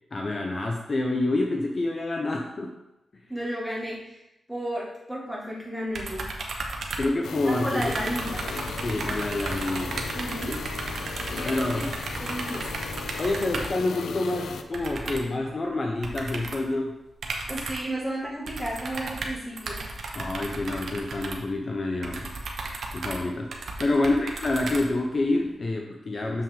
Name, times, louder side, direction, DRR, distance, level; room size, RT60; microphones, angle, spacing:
voice 1, 0.1-2.7 3.1-3.2 7.0-8.1 8.8-10.1 11.4-11.9 13.2-17.0 20.1-22.3 22.9-23.5 23.8-26.4, left 2 dB, 40° left, 1 dB, 0.7 m, -27 dB
voice 2, 3.3-4.2 4.5-6.3 7.4-8.4 10.1-10.6 11.3-11.9 12.2-12.8 17.5-19.8 24.0-24.2, right 1 dB, ahead, -4 dB, 2.0 m, -32 dB
sound 1, 5.9-7.5 7.8-13.8 14.7-15.4 16.0-16.7 17.2-18.0 18.5-25.3, right 3 dB, 65° right, 1.0 m, -34 dB
sound 2, 7.2-14.6, left 5 dB, 85° left, 0.5 m, -37 dB
7.0 x 5.7 x 3.7 m, 0.92 s
wide cardioid pair, 100°, 0 cm